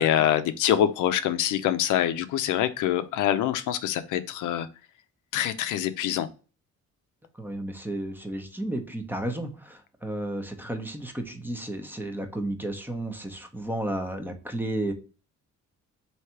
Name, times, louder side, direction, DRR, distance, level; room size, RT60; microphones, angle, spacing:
voice 1, 0.0-4.7 5.3-6.3, left 11 dB, 85° left, 11 dB, 0.5 m, -25 dB
voice 2, 7.4-14.9, right 1 dB, 5° right, 5 dB, 0.8 m, -33 dB
3.2 x 2.8 x 4.3 m, 0.35 s
cardioid pair, 90°, 30 cm